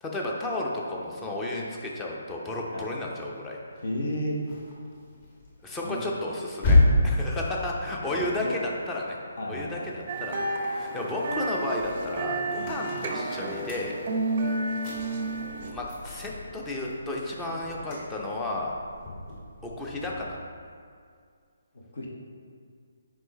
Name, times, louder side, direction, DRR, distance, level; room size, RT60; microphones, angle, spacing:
voice 1, 0.0-3.6 5.6-9.2 9.5-14.0 15.7-18.7 19.6-20.4, left 1 dB, 10° left, -2 dB, 0.7 m, -33 dB
voice 2, 3.8-4.4 5.8-6.0 7.0-7.3 8.4-8.6 9.4-9.9 12.6-12.7 21.7-22.1, left 1 dB, 55° left, -1 dB, 1.1 m, -33 dB
sound 1, 3.8-10.3 10.7-20.5, left 2 dB, 30° left, 1.5 m, -31 dB
sound 2, 10.1-15.7, right 2 dB, 35° right, 0.6 m, -31 dB
7.8 x 5.0 x 3.2 m, 2.1 s
figure-of-eight pair, 140°, 0 cm